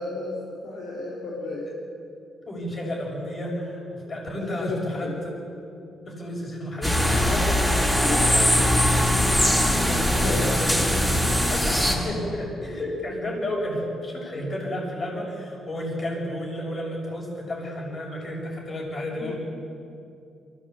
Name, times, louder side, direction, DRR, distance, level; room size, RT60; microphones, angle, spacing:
voice 1, 0.0-1.7 4.3-5.2 8.0-8.3 10.0-10.5 10.8-11.4 19.2-19.4, left 3 dB, 85° left, -3 dB, 3.9 m, -33 dB
voice 2, 2.5-5.1 6.1-8.1 9.3-10.8 11.5-19.4, left 1 dB, 40° left, -1 dB, 6.8 m, -32 dB
sound 1, 6.8-11.9, left 1 dB, 15° left, 6.3 m, -21 dB
23.5 x 17.0 x 8.5 m, 2.6 s
cardioid pair, 90°, 0 cm